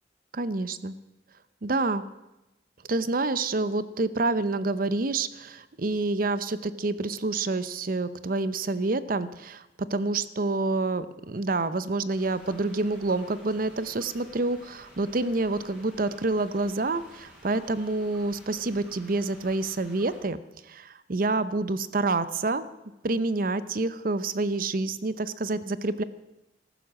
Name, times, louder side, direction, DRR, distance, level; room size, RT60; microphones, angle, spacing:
voice 1, 0.3-0.9 1.6-2.0 2.9-22.7 23.0-26.0, right 2 dB, 50° right, 14 dB, 0.7 m, -28 dB
sound 1, 12.1-20.2, equal, 5° right, 5.2 m, -52 dB
14.5 x 12.0 x 7.5 m, 0.97 s
head